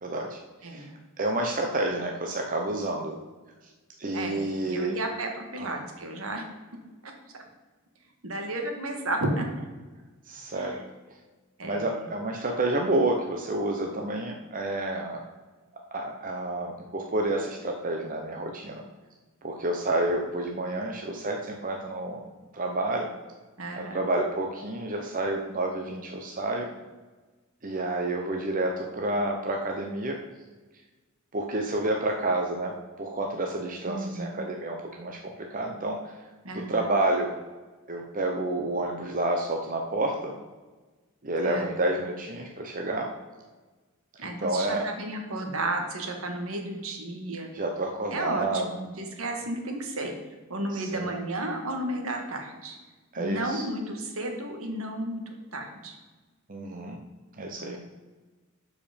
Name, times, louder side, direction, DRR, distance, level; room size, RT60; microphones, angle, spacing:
voice 1, 0.0-3.2 4.0-5.0 5.6-5.8 10.3-10.8 11.6-15.2 15.9-18.8 19.4-22.2 22.5-23.1 23.8-26.7 27.6-30.2 31.3-35.2 35.5-36.1 36.5-37.3 37.9-40.4 41.2-43.1 44.2-44.9 47.5-48.7 50.7-51.1 53.1-53.6 56.5-57.0 57.4-57.8, right 2 dB, 40° right, 1 dB, 0.8 m, -29 dB
voice 2, 4.1-6.5 7.0-7.1 8.2-9.5 10.5-10.8 11.6-12.0 23.6-24.1 33.9-34.4 36.4-36.9 41.4-41.7 44.2-47.5 48.1-50.1 50.5-52.8 53.2-55.2 55.5-55.9, right 1 dB, 70° right, 3 dB, 1.7 m, -33 dB
12.0 x 5.1 x 5.1 m, 1.3 s
head